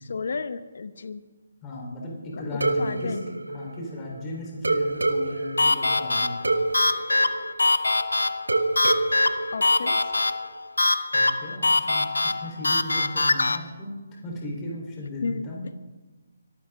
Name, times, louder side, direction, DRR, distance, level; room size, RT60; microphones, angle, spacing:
voice 1, 0.1-1.2 2.4-3.3 9.5-10.1 15.2-15.4, left 4 dB, 60° left, 12 dB, 1.1 m, -33 dB
voice 2, 1.6-3.2 3.5-6.5 11.1-13.9 14.2-15.6, left 1 dB, 20° left, -2 dB, 4.1 m, -36 dB
sound 1, 2.6-4.2 4.6-8.0 8.5-10.4, right 2 dB, 85° right, 1.3 m, -28 dB
sound 2, 5.6-13.6, left 2 dB, 85° left, 0.8 m, -23 dB
24.0 x 13.0 x 3.8 m, 1.2 s
figure-of-eight pair, 150°, 0 cm